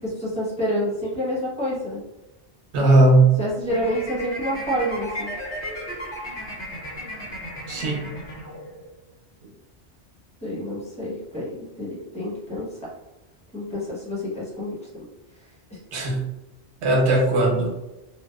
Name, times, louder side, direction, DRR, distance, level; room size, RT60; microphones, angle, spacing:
voice 1, 0.0-2.0 3.4-5.3 10.4-12.7 13.5-15.0 15.7-15.8, equal, 5° left, -7 dB, 0.7 m, -28 dB
voice 2, 2.7-3.4 7.7-8.0 15.9-16.2 16.8-17.7, right 2 dB, 75° right, 1 dB, 0.8 m, -18 dB
sound 1, 3.7-8.9, equal, 85° left, 1.4 m, -35 dB
2.7 x 2.0 x 2.2 m, 1.0 s
omnidirectional pair, 1.1 m